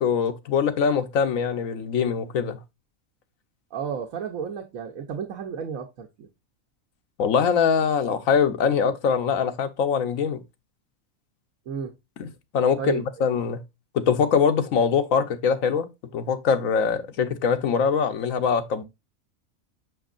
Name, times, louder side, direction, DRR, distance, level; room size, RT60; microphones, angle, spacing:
voice 1, 0.0-2.6 7.2-10.4 12.2-12.3 12.5-13.6 13.9-18.8, left 6 dB, 75° left, 1.3 m, -23 dB
voice 2, 3.7-6.3 11.7-11.9 12.8-13.3, right 7 dB, 80° right, 1.3 m, -32 dB
6.4 x 6.1 x 2.4 m
omnidirectional pair, 1.4 m